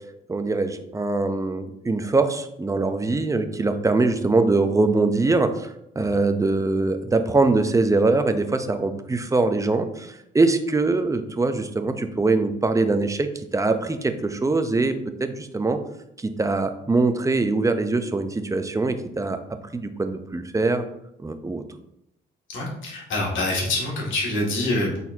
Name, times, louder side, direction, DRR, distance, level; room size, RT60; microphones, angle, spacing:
voice 1, 0.3-5.5 6.0-10.1 10.3-13.3 13.5-14.9 15.2-15.8 16.4-19.4 19.7-20.8 21.2-21.6, right 3 dB, 15° right, 8 dB, 0.6 m, -22 dB
voice 2, 22.5-25.0, left 2 dB, 75° left, -3 dB, 2.3 m, -26 dB
8.5 x 4.2 x 2.8 m, 0.80 s
cardioid pair, 90°, 20 cm